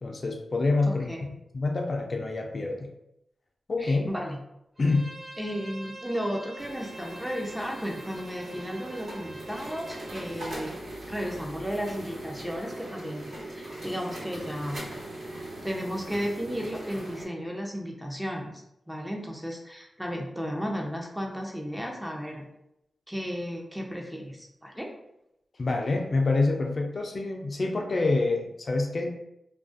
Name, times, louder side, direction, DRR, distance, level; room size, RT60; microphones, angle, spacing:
voice 1, 0.0-1.1 1.5-2.9 3.7-4.1 4.8-5.0 25.6-29.1, left 3 dB, 55° left, 1 dB, 0.4 m, -26 dB
voice 2, 0.8-1.3 3.8-4.4 5.4-10.8 11.1-14.8 15.6-22.5 23.1-24.9, equal, 5° right, 0 dB, 0.5 m, -34 dB
Bowed string instrument, 4.8-10.4, right 1 dB, 50° right, 0.6 m, -45 dB
sound 1, 6.6-17.3, right 1 dB, 80° right, 1.3 m, -40 dB
2.3 x 2.3 x 2.4 m, 0.82 s
cardioid pair, 60°, 0 cm